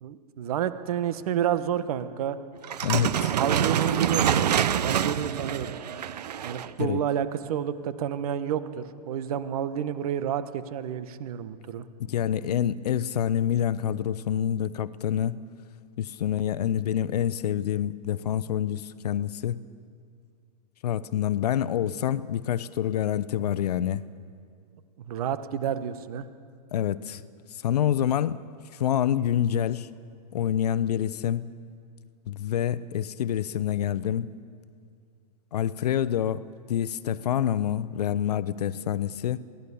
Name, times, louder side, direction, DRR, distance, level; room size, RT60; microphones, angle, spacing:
voice 1, 0.0-2.4 3.3-4.4 4.7-5.7 6.4-11.9 25.0-26.2, right 9 dB, 65° right, 1.3 m, -30 dB
sound 1, 2.6-6.8, right 9 dB, 80° right, 0.9 m, -26 dB
voice 2, 2.8-3.3 6.8-7.0 12.0-15.4 16.0-19.7 20.8-24.0 26.7-27.2 27.6-28.4 28.7-29.9 30.3-31.5 32.3-34.3 35.5-36.4 36.7-39.4, left 10 dB, 75° left, 0.8 m, -27 dB
23.0 x 17.0 x 7.1 m
hypercardioid pair, 115°, 21 cm